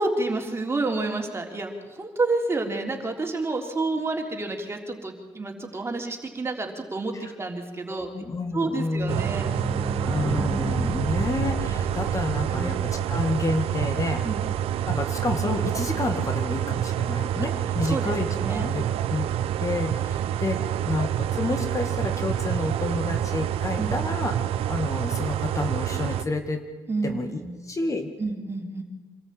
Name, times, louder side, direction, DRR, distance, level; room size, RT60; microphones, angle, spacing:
voice 1, 0.0-8.1 8.5-9.5 12.5-12.7 14.2-14.4 17.4-17.5 17.8-18.7 23.8-24.0 26.9-27.6 28.2-28.8, right 3 dB, 25° right, 2 dB, 3.6 m, -29 dB
voice 2, 8.0-9.2 10.1-14.2 14.9-18.8 19.1-19.3 19.6-24.3 24.7-26.6 27.0-28.1, left 3 dB, 30° left, 6 dB, 2.1 m, -29 dB
sound 1, 8.7-14.2 14.5-14.6 14.8-14.9 15.2-15.3, right 1 dB, 10° right, 4.5 m, -33 dB
sound 2, 9.1-26.2, right 10 dB, 75° right, 0.9 m, -27 dB
25.5 x 14.0 x 8.9 m, 1.4 s
supercardioid pair, 75°, 10 cm